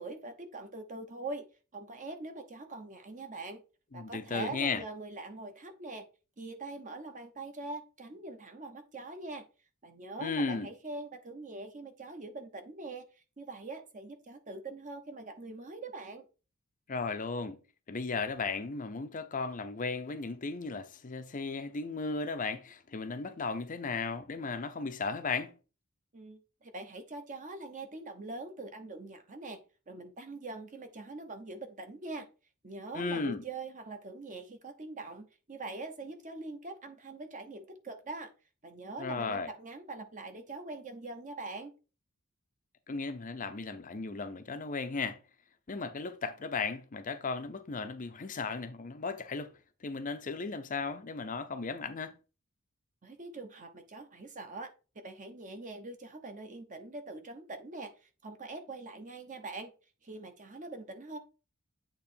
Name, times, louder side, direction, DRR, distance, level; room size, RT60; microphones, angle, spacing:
voice 1, 0.0-1.4 1.7-3.6 3.9-6.1 6.4-9.5 9.8-13.0 13.4-16.2 26.1-29.6 29.9-32.3 32.6-38.3 38.6-41.7 53.0-54.7 55.0-59.7 60.0-61.2, right 2 dB, 35° right, 1.0 m, -43 dB
voice 2, 3.9-4.8 10.2-10.7 16.9-17.6 17.9-25.5 32.9-33.4 39.0-39.5 42.9-45.2 45.7-49.5 49.8-52.1, left 4 dB, 35° left, 0.6 m, -35 dB
8.4 x 3.1 x 4.3 m
head